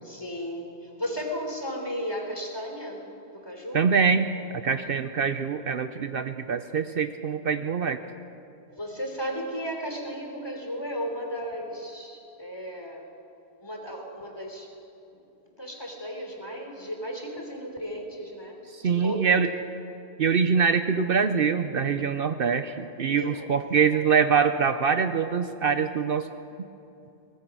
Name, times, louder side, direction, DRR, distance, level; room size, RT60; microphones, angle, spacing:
voice 1, 0.0-3.8 8.7-13.0 13.6-14.7 15.1-15.2 15.6-18.6 18.8-19.2 23.2-23.4, equal, 20° left, 1 dB, 3.5 m, -35 dB
voice 2, 3.7-8.0 18.7-19.5 20.2-26.3, right 6 dB, 60° right, 9 dB, 0.9 m, -24 dB
24.5 x 19.5 x 6.2 m, 2.7 s
omnidirectional pair, 1.1 m